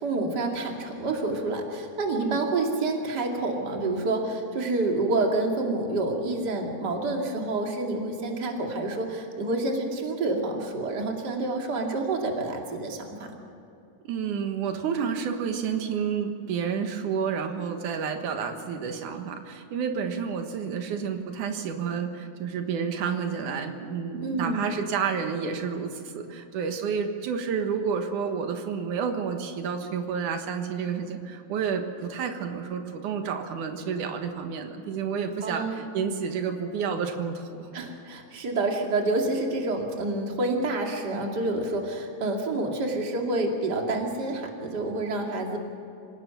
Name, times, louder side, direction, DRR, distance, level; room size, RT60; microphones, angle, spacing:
voice 1, 0.0-13.3 24.2-24.7 35.4-35.9 37.7-45.6, right 2 dB, 35° right, 1 dB, 2.7 m, -28 dB
voice 2, 14.0-37.7, right 6 dB, 90° right, 5 dB, 2.9 m, -30 dB
26.5 x 17.5 x 6.0 m, 2.8 s
omnidirectional pair, 3.4 m